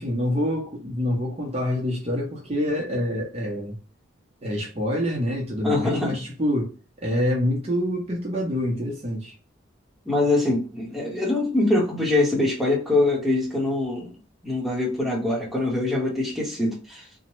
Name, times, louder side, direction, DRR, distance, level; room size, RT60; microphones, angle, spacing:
voice 1, 0.0-3.7 4.4-6.7 7.0-9.3, left 1 dB, 35° right, 0.7 m, -26 dB
voice 2, 5.6-6.2 10.0-14.1 14.4-17.0, left 2 dB, ahead, 0.9 m, -23 dB
2.9 x 2.1 x 3.1 m
head